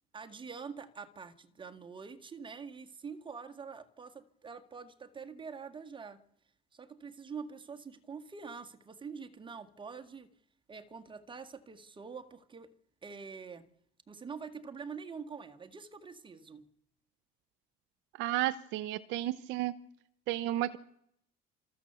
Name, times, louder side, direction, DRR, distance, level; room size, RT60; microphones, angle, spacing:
voice 1, 0.1-6.2 6.7-10.3 10.7-12.7 13.0-13.7 14.1-16.6, right 5 dB, 25° right, 1.8 m, -45 dB
voice 2, 18.2-19.7 20.3-20.8, right 15 dB, 75° right, 0.8 m, -32 dB
29.0 x 13.5 x 6.9 m
supercardioid pair, 90°, 19 cm